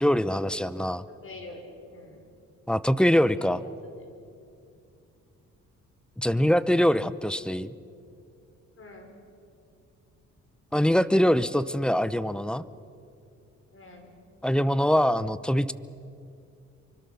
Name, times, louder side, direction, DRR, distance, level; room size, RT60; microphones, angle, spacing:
voice 1, 0.0-1.0 2.7-3.6 6.2-7.7 10.7-12.6 14.4-15.7, equal, 5° left, 16 dB, 0.7 m, -23 dB
voice 2, 1.1-2.2 3.1-4.1 8.8-9.1 13.7-14.1, left 2 dB, 45° left, 4 dB, 5.5 m, -44 dB
26.0 x 24.5 x 7.0 m, 2.6 s
cardioid pair, 90°, 30 cm